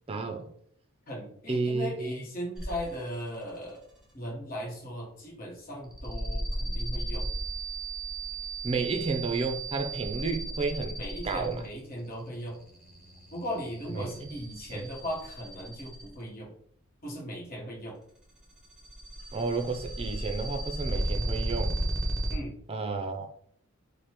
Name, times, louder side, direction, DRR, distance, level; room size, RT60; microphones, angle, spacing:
voice 1, 0.1-0.5 1.5-2.2 8.6-11.6 13.9-14.3 14.7-14.8 19.3-21.8 22.7-23.3, right 3 dB, 25° right, 0.4 m, -31 dB
voice 2, 1.1-3.8 4.1-7.3 8.7-8.8 11.0-12.6 13.3-16.5 17.0-18.0 22.3-22.6, equal, 40° left, 1.1 m, -38 dB
sound 1, 2.5-3.1 3.5-4.0 5.8-16.3 18.2-22.4, right 1 dB, 5° right, 0.8 m, -35 dB
5.2 x 2.1 x 3.0 m
head